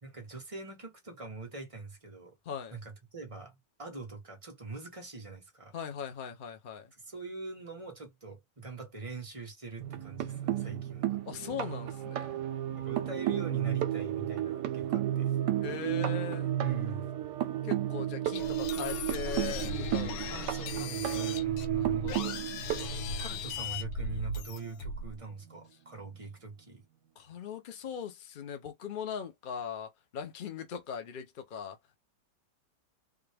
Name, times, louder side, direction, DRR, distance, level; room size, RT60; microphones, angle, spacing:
voice 1, 0.0-2.4 2.7-5.7 7.0-11.2 12.7-15.4 16.6-17.1 20.3-22.2 23.1-26.8, right 3 dB, 25° right, 0.9 m, -43 dB
voice 2, 2.4-2.8 5.7-6.9 11.2-12.4 15.6-16.5 17.6-20.3 20.8-21.2 21.7-22.3 27.2-32.0, left 7 dB, 60° left, 0.5 m, -40 dB
sound 1, 9.8-23.8 25.0-25.1 25.5-25.6, right 12 dB, 75° right, 1.2 m, -33 dB
sound 2, 18.4-25.2, left 3 dB, 85° left, 1.3 m, -37 dB
3.7 x 2.3 x 3.3 m
omnidirectional pair, 1.9 m